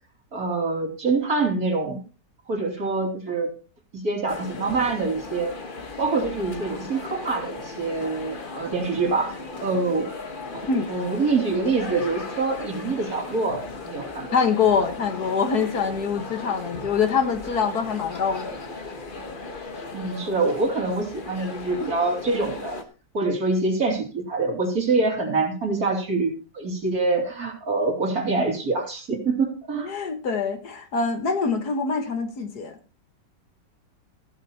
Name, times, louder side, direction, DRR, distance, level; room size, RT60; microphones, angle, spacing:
voice 1, 0.3-2.0 2.5-3.5 3.9-5.5 6.0-10.1 10.5-10.6 10.9-14.3 19.9-22.8 23.1-29.9, right 3 dB, 60° right, 1 dB, 3.3 m, -25 dB
sound 1, 4.3-22.8, left 3 dB, 35° left, 1.2 m, -37 dB
voice 2, 14.3-18.6 29.7-32.8, left 5 dB, 65° left, 7 dB, 1.9 m, -24 dB
14.5 x 12.0 x 2.8 m, 0.35 s
omnidirectional pair, 1.8 m